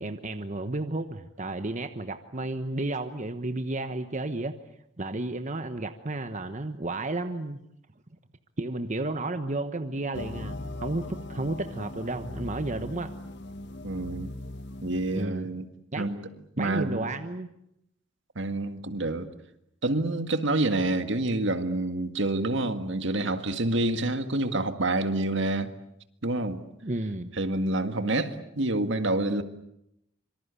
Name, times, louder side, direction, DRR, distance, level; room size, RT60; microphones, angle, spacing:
voice 1, 0.0-4.5 5.0-7.6 8.6-13.1 15.1-15.5 15.9-16.1 16.6-17.5 26.8-27.3, right 2 dB, 35° right, 1.1 m, -32 dB
sound 1, 10.1-15.2, left 1 dB, 55° left, 1.4 m, -39 dB
voice 2, 13.8-14.3 14.8-15.7 16.0-16.2 16.6-17.1 18.4-19.3 19.8-25.7 26.2-26.6 27.4-29.4, right 2 dB, 60° right, 1.9 m, -27 dB
26.0 x 24.5 x 8.4 m
head